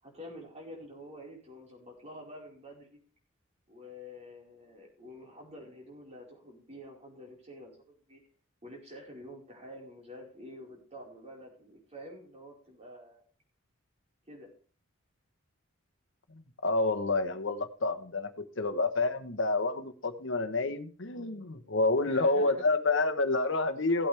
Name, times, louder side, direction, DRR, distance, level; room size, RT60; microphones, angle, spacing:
voice 1, 0.0-3.0 3.7-8.2 8.6-13.2 14.3-14.5 22.0-22.7, equal, 30° right, -1 dB, 4.8 m, -48 dB
voice 2, 16.3-24.1, left 3 dB, 60° left, 8 dB, 1.2 m, -29 dB
16.0 x 8.7 x 3.5 m, 0.41 s
head